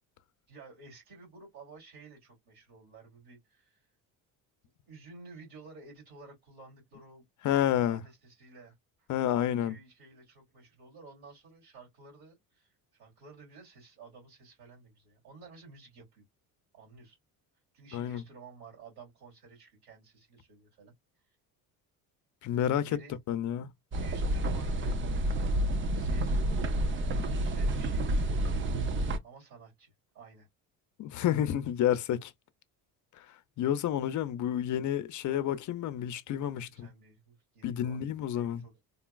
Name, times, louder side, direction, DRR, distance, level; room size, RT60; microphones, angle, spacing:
voice 1, 0.5-3.8 4.9-7.2 7.7-16.2 16.7-17.2 17.7-20.9 22.8-23.2 23.9-25.2 25.9-26.8 27.2-28.2 29.2-30.5 36.6-38.8, right 3 dB, 75° right, 2.8 m, -53 dB
voice 2, 7.4-8.0 9.1-9.7 17.9-18.2 22.4-22.9 23.3-23.7 31.0-32.3 33.2-33.3 33.6-36.9 37.6-38.6, left 11 dB, 50° left, 0.5 m, -30 dB
sound 1, 23.9-29.2, right 1 dB, 30° right, 0.5 m, -29 dB
3.9 x 2.3 x 2.2 m
cardioid pair, 110°, 40 cm